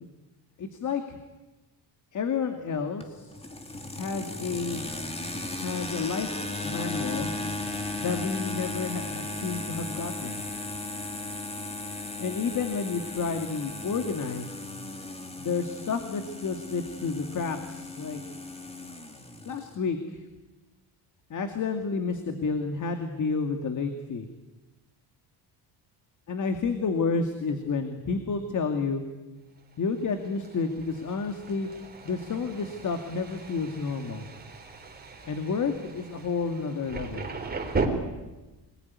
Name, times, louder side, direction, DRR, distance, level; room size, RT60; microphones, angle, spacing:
voice 1, 0.6-1.2 2.1-3.3 4.0-4.8 5.6-6.3 6.6-7.4 8.0-10.4 12.2-14.6 15.4-18.2 19.4-20.2 21.3-24.3 26.3-29.0 29.8-31.7 32.0-34.3 35.2-37.3, left 5 dB, 45° left, 6 dB, 2.3 m, -30 dB
sound 1, 3.0-19.8, left 2 dB, 15° left, 2.6 m, -36 dB
Thunder, 29.7-37.9, right 4 dB, 20° right, 4.0 m, -37 dB
26.0 x 20.5 x 9.7 m, 1.1 s
cardioid pair, 125°, 42 cm